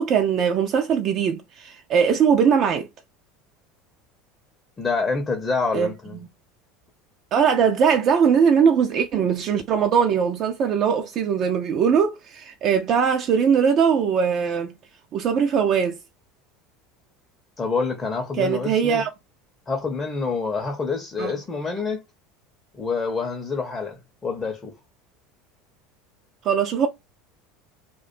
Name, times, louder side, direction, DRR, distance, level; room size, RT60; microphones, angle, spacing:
voice 1, 0.0-2.9 5.7-5.9 7.3-14.7 15.1-16.0 18.4-19.1 21.2-21.3 26.4-26.9, right 7 dB, 40° right, 0.3 m, -20 dB
voice 2, 4.8-6.2 17.6-19.0 19.7-22.0 22.7-24.7, left 4 dB, 20° left, 0.6 m, -27 dB
2.3 x 2.1 x 2.5 m
figure-of-eight pair, 70°, 0 cm